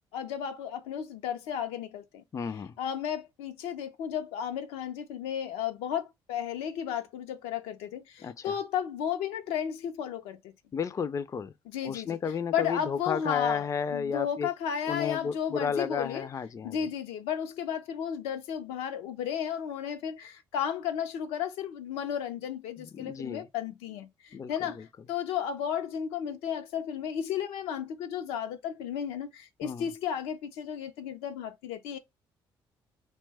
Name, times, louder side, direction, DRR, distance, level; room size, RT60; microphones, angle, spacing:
voice 1, 0.1-2.2 2.8-10.5 11.7-12.2 12.5-13.7 13.9-16.3 16.6-24.8 25.1-32.0, left 8 dB, 85° left, 0.5 m, -33 dB
voice 2, 2.3-2.8 8.2-8.6 10.7-11.5 11.8-14.5 14.9-16.9 22.9-23.5 24.3-24.9 29.6-29.9, left 6 dB, 35° left, 0.4 m, -33 dB
2.8 x 2.2 x 3.3 m
supercardioid pair, 70°, 10 cm